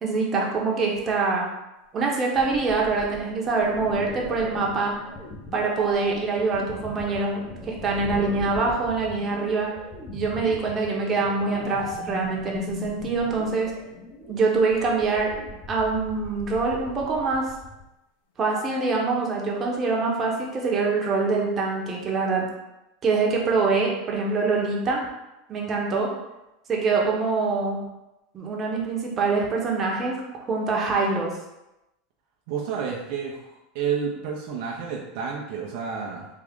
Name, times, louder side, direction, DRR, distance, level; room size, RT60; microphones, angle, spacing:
voice 1, 0.0-1.5 1.9-4.9 5.5-9.7 10.1-13.7 14.3-15.3 15.7-17.5 18.4-22.4 23.0-25.0 25.5-26.1 26.7-27.8 28.3-31.3, right 4 dB, 30° right, -2 dB, 0.9 m, -24 dB
sound 1, 2.3-17.8, left 2 dB, 30° left, 0.8 m, -40 dB
sound 2, 3.8-3.9 4.6-6.6 7.3-7.4 9.0-9.1 11.4-12.6 18.4-19.2, left 2 dB, 80° left, 0.4 m, -39 dB
voice 2, 32.5-33.5 33.7-36.3, right 6 dB, 65° right, -2 dB, 0.6 m, -30 dB
3.6 x 2.3 x 3.6 m, 0.95 s
hypercardioid pair, 105°, 0 cm